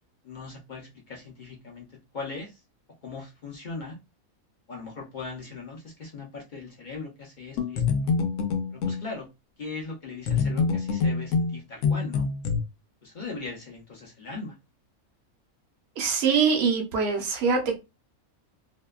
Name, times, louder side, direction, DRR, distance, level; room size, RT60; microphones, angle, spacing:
voice 1, 0.2-1.9 2.1-2.6 3.0-4.0 4.7-8.1 8.7-9.3 9.6-12.3 13.0-14.6, left 4 dB, 55° left, -1 dB, 0.5 m, -39 dB
sound 1, 7.6-9.0 10.3-12.6, left 5 dB, 75° left, 0.9 m, -25 dB
voice 2, 16.0-17.8, right 5 dB, 60° right, 1 dB, 0.8 m, -23 dB
2.7 x 2.1 x 2.3 m, 0.25 s
omnidirectional pair, 1.5 m